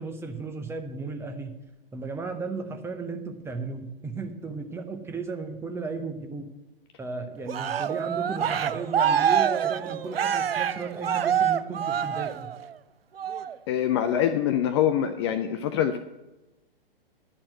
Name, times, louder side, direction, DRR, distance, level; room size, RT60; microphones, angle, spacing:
voice 1, 0.0-1.5 1.9-6.5 7.0-12.5, right 4 dB, 10° right, 5 dB, 0.7 m, -35 dB
Cheering, 7.5-12.7 13.2-13.5, right 9 dB, 75° right, 0.5 m, -26 dB
voice 2, 13.7-16.0, left 10 dB, 30° left, 8 dB, 0.4 m, -24 dB
11.0 x 4.3 x 7.6 m, 1.0 s
figure-of-eight pair, 110°, 30 cm